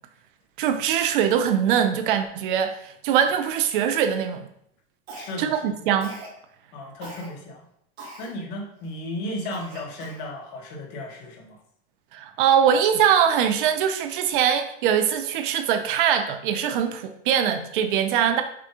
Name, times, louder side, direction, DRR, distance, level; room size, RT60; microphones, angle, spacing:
voice 1, 0.6-4.5 5.4-6.1 12.1-18.4, right 8 dB, 55° right, 8 dB, 0.6 m, -22 dB
voice 2, 5.1-5.8 6.7-7.7 8.2-11.6, left 1 dB, 45° left, 1 dB, 1.0 m, -35 dB
Cough, 5.1-5.6 6.0-6.4 7.0-7.3 8.0-8.3 8.8-8.9 9.5-10.3, right 2 dB, 90° right, 1.6 m, -41 dB
6.0 x 2.3 x 2.9 m, 0.72 s
supercardioid pair, 150°, 31 cm